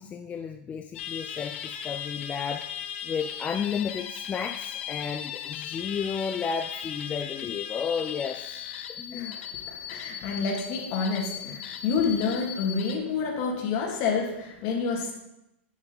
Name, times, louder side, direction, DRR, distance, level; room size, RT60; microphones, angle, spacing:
voice 1, 0.0-2.7 3.0-9.4 11.4-11.6, left 6 dB, 20° left, 7 dB, 0.4 m, -33 dB
sound 1, 0.9-13.0, left 9 dB, 70° left, 1.0 m, -37 dB
voice 2, 9.1-15.1, left 5 dB, 50° left, 0 dB, 2.5 m, -29 dB
10.5 x 6.3 x 4.0 m, 0.88 s
hypercardioid pair, 115°, 7 cm